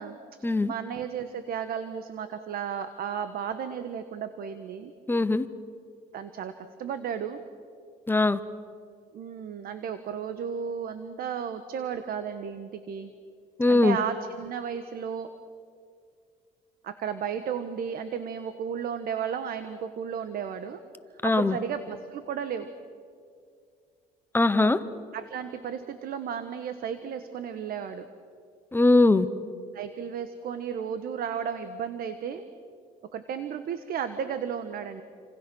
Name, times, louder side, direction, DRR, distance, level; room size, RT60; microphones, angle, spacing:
voice 1, 0.0-4.9 6.1-7.5 9.1-13.1 13.7-15.3 16.8-20.8 21.2-22.7 25.1-28.1 29.7-32.4 33.1-35.0, right 7 dB, 60° right, 10 dB, 1.4 m, -34 dB
voice 2, 5.1-5.5 8.1-8.4 13.6-14.0 21.2-21.6 24.3-24.8 28.7-29.3, left 2 dB, 10° left, 12 dB, 1.0 m, -21 dB
29.0 x 26.0 x 6.3 m, 2.2 s
cardioid pair, 110°, 17 cm